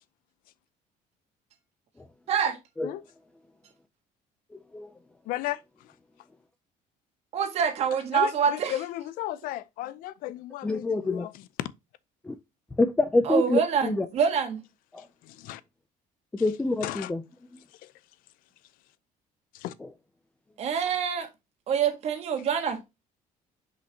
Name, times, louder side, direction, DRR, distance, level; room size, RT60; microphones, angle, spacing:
voice 1, 2.3-2.6 7.3-8.8 13.2-14.6 20.6-21.3 21.7-22.8, right 7 dB, 45° right, 1.6 m, -26 dB
voice 2, 5.3-5.9 8.1-11.3 11.6-11.7 15.2-15.6 16.8-17.1 17.8-17.9 19.5-19.7, left 14 dB, 75° left, 0.6 m, -35 dB
voice 3, 10.6-11.3 12.2-12.4 12.8-14.1 14.9-15.1 16.3-17.2 19.8-19.9, left 2 dB, 10° left, 0.4 m, -26 dB
6.5 x 5.3 x 2.8 m
cardioid pair, 180°, 14 cm